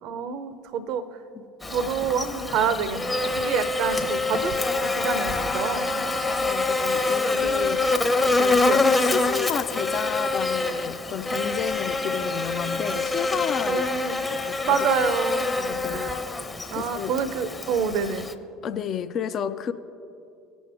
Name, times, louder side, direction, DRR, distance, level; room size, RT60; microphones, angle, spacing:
voice 1, 0.0-1.2 1.7-6.0 7.3-7.8 8.6-8.8 13.7-14.2 14.6-15.4 15.9-16.1 16.7-18.3, right 6 dB, 55° right, 13 dB, 0.7 m, -28 dB
Buzz, 1.6-18.3, left 3 dB, 15° left, 0.8 m, -26 dB
voice 2, 6.3-7.9 8.3-13.9 14.3-14.7 15.6-16.1 16.7-17.1 18.6-19.7, left 8 dB, 45° left, 10 dB, 0.5 m, -31 dB
18.5 x 6.3 x 3.4 m, 2.6 s
figure-of-eight pair, 65°, 0 cm